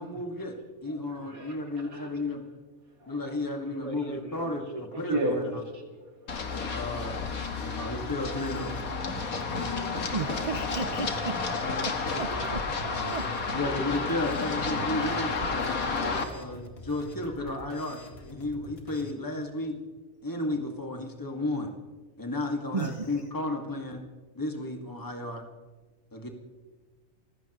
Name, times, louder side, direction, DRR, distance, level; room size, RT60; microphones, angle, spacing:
voice 1, 0.0-2.4 3.1-5.6 6.5-7.2 7.6-8.7 13.5-15.8 16.3-19.8 20.2-21.7 22.2-24.0 24.4-25.4 26.1-26.3, left 2 dB, 15° left, 2 dB, 1.9 m, -33 dB
voice 2, 0.9-1.6 1.8-2.1 3.0-3.4 4.9-5.4 5.7-7.7 10.8-11.3 11.7-12.5 13.0-13.8 15.5-15.6 15.8-16.4 17.4-17.5, right 1 dB, 75° right, 1 dB, 3.0 m, -38 dB
voice 3, 3.7-4.8 10.1-11.4 11.8-13.3 22.7-23.1, right 4 dB, 50° right, 9 dB, 0.4 m, -35 dB
Run, 6.3-16.2, left 4 dB, 80° left, 2.0 m, -31 dB
sound 1, 7.9-19.1, left 1 dB, 45° left, 2.4 m, -48 dB
29.5 x 16.0 x 3.1 m, 1.3 s
omnidirectional pair, 1.5 m